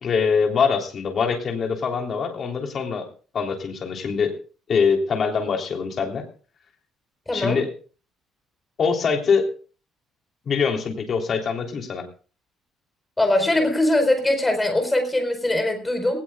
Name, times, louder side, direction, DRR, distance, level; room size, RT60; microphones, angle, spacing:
voice 1, 0.0-3.1 3.3-4.3 4.7-6.2 7.3-7.7 8.8-9.5 10.4-12.0, left 5 dB, 35° left, 3 dB, 3.4 m, -23 dB
voice 2, 7.3-7.6 13.2-16.2, left 1 dB, 10° left, 5 dB, 4.4 m, -21 dB
20.5 x 19.0 x 2.4 m, 0.39 s
cardioid pair, 170°, 0 cm